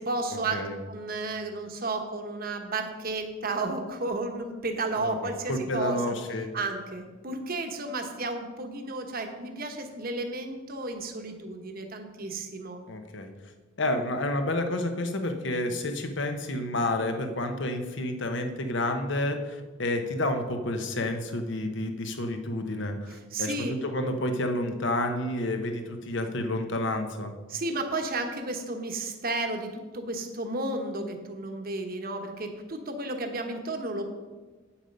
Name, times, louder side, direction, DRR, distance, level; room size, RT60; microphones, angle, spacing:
voice 1, 0.0-0.6 0.9-6.0 6.5-12.8 23.1-23.7 27.5-34.0, right 2 dB, 50° right, 5 dB, 1.1 m, -33 dB
voice 2, 5.0-6.5 12.9-13.3 13.8-27.3, left 1 dB, 65° left, 6 dB, 1.0 m, -30 dB
8.5 x 7.2 x 5.3 m, 1.3 s
head